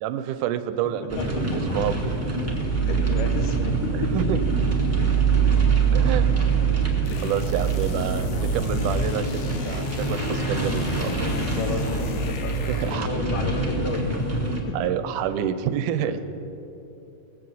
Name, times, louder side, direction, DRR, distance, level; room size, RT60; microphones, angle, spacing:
voice 1, 0.0-2.1 4.1-4.4 5.9-6.5 7.2-11.1 12.7-13.1 14.7-16.2, right 10 dB, 85° right, 11 dB, 2.1 m, -28 dB
voice 2, 0.8-1.6 2.8-4.2 4.4-4.5 7.1-7.3 11.5-14.0 14.7-14.9 15.2-15.3 16.0-16.2, left 4 dB, 90° left, 4 dB, 3.0 m, -33 dB
sound 1, 1.1-14.6, right 4 dB, 5° right, 1.1 m, -24 dB
sound 2, 7.1-13.2, left 5 dB, 70° left, 1.8 m, -37 dB
19.5 x 7.8 x 7.9 m, 2.9 s
omnidirectional pair, 3.7 m